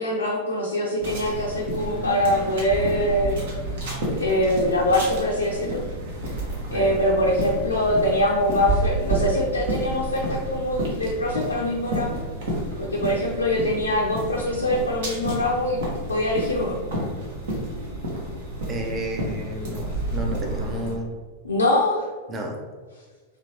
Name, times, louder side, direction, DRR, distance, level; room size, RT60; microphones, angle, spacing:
voice 1, 0.0-3.4 4.2-5.8 6.7-12.2 12.8-15.8 16.1-16.8 21.4-22.1, left 1 dB, 75° left, -2 dB, 0.4 m, -23 dB
sound 1, 1.0-20.9, right 1 dB, 60° right, 1.0 m, -30 dB
voice 2, 18.7-21.1 22.3-22.6, right 1 dB, 25° right, 3 dB, 0.5 m, -32 dB
3.2 x 2.9 x 2.8 m, 1.5 s
figure-of-eight pair, 90°, 0 cm